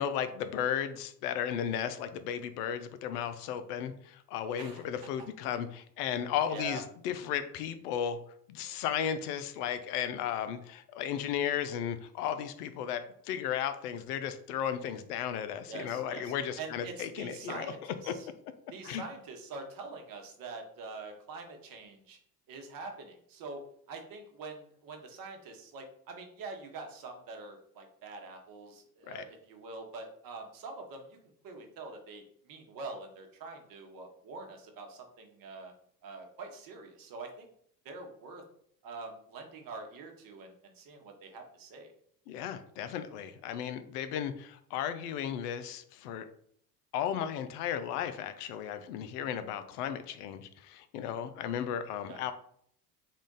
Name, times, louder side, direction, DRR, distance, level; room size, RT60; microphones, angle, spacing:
voice 1, 0.0-8.2 8.5-17.7 18.1-18.2 18.8-19.0 29.1-29.2 42.3-46.3 46.9-52.3, left 9 dB, 70° left, 10 dB, 0.6 m, -35 dB
voice 2, 6.5-6.8 15.7-18.3 18.7-22.2 22.5-23.6 23.9-31.2 31.4-35.7 36.0-37.5 37.8-38.4 38.8-41.9 49.1-49.3 52.1-52.2, right 3 dB, 45° right, 3 dB, 1.1 m, -45 dB
3.7 x 2.4 x 3.7 m, 0.65 s
hypercardioid pair, 80°, 49 cm